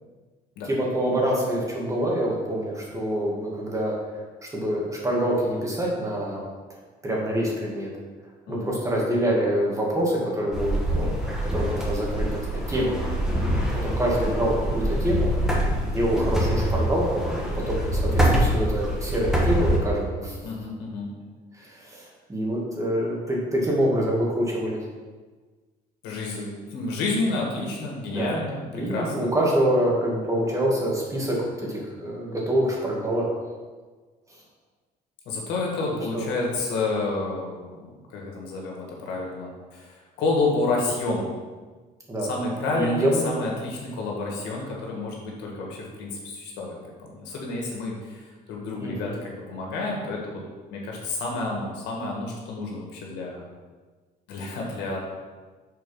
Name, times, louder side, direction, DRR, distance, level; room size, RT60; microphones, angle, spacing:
voice 1, 0.6-6.4 7.0-7.9 8.5-11.2 11.5-13.0 13.8-15.4 15.8-17.3 17.5-20.4 21.5-24.9 28.0-28.3 28.7-33.3 34.3-34.4 36.1-36.3 42.1-42.3 42.7-43.2 48.8-49.2, right 1 dB, 20° right, -3 dB, 1.9 m, -26 dB
sound 1, 10.5-19.8, right 1 dB, 5° right, 1.5 m, -25 dB
voice 2, 20.4-21.1 26.0-29.3 35.3-41.3 42.3-46.7 47.1-50.4 50.7-53.4 54.3-55.0, left 3 dB, 90° left, -2 dB, 1.8 m, -29 dB
6.8 x 4.1 x 5.4 m, 1.4 s
cardioid pair, 110°, 17 cm